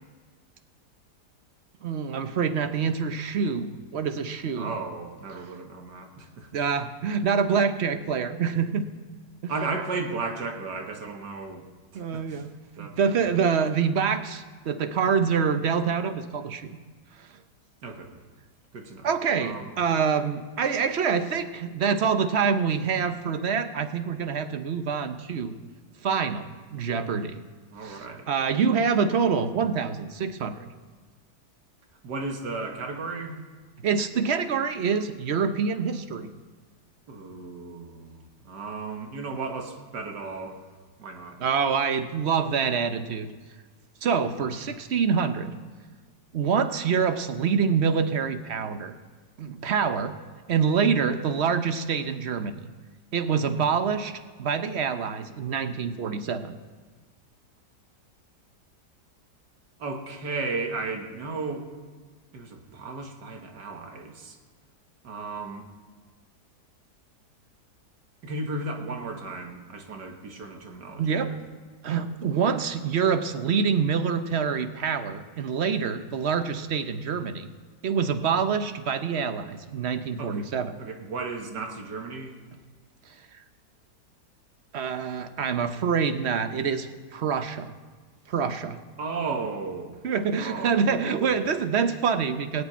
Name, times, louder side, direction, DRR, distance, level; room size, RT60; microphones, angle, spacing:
voice 1, 1.8-4.7 5.4-5.5 6.5-8.9 9.4-9.5 11.9-12.5 12.8-16.7 19.0-25.6 26.0-27.4 27.8-30.7 33.8-36.3 41.4-43.3 44.0-45.5 46.3-48.9 49.4-50.1 50.5-52.7 53.1-54.1 54.4-56.6 71.0-71.3 71.8-77.5 77.8-80.8 84.7-87.7 88.3-88.8 90.0-92.6, right 6 dB, 50° right, 9 dB, 0.9 m, -26 dB
voice 2, 4.6-6.5 9.5-11.7 11.9-12.4 12.8-13.2 17.8-18.2 18.7-19.1 19.4-19.7 27.7-28.3 32.0-33.4 37.1-40.6 41.0-41.4 59.8-61.6 62.3-64.4 65.0-65.6 68.2-71.4 80.2-80.4 80.8-82.3 89.0-90.0 90.4-91.4, right 3 dB, 80° right, 4 dB, 2.1 m, -34 dB
19.0 x 6.7 x 9.2 m, 1.5 s
omnidirectional pair, 1.8 m